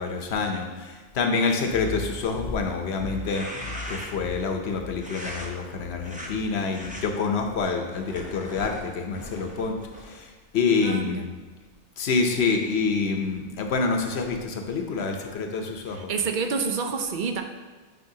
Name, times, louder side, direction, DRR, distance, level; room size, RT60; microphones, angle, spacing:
voice 1, 0.0-3.5 3.9-9.8 10.1-11.3 12.0-16.1, left 4 dB, 70° left, 3 dB, 1.0 m, -27 dB
sound 1, 1.7-7.7, left 3 dB, 55° left, 0.5 m, -39 dB
sound 2, 3.1-4.3 5.0-5.5 6.0-6.3 6.7-7.0 7.6-10.2, equal, 10° right, 0.7 m, -40 dB
voice 2, 10.8-11.2 15.9-17.4, right 5 dB, 55° right, 6 dB, 0.6 m, -28 dB
9.2 x 4.4 x 2.8 m, 1.3 s
omnidirectional pair, 1.2 m